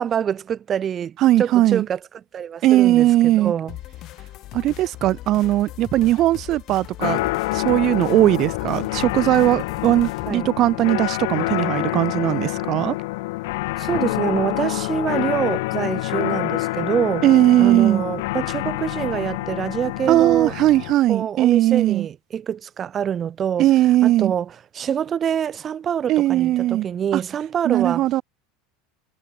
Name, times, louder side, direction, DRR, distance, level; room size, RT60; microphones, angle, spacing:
voice 1, 0.0-2.0 2.3-3.8 10.3-10.5 13.8-17.3 17.6-20.5 21.1-23.7 24.0-24.5 24.7-28.0, right 8 dB, 35° right, 1.4 m, -25 dB
voice 2, 1.2-1.9 2.6-3.5 4.5-13.0 17.2-18.0 20.1-22.1 23.6-24.3 26.1-26.9 27.1-27.2 27.6-28.2, right 15 dB, 50° right, 0.6 m, -18 dB
sound 1, 3.7-10.3, left 16 dB, 50° left, 2.5 m, -39 dB
sound 2, 7.0-20.9, left 22 dB, 75° left, 4.6 m, -27 dB
supercardioid pair, 100°, 0 cm